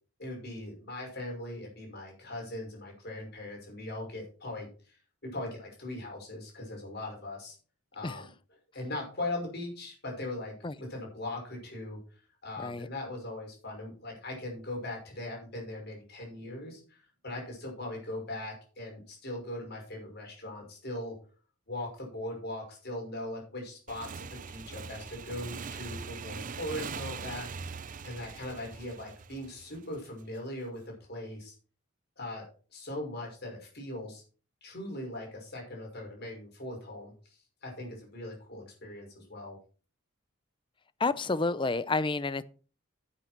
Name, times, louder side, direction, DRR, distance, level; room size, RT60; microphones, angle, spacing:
voice 1, 0.2-7.6 7.9-8.2 8.7-10.5 10.9-12.0 12.4-21.2 21.7-27.5 28.0-31.5 32.2-32.4 32.7-34.2 34.6-39.6, left 1 dB, 50° left, 5.8 m, -40 dB
voice 2, 12.6-12.9 41.0-42.4, left 3 dB, 25° left, 0.5 m, -30 dB
Motorcycle / Engine, 23.9-30.2, right 5 dB, 40° right, 0.5 m, -42 dB
10.5 x 8.5 x 4.5 m
head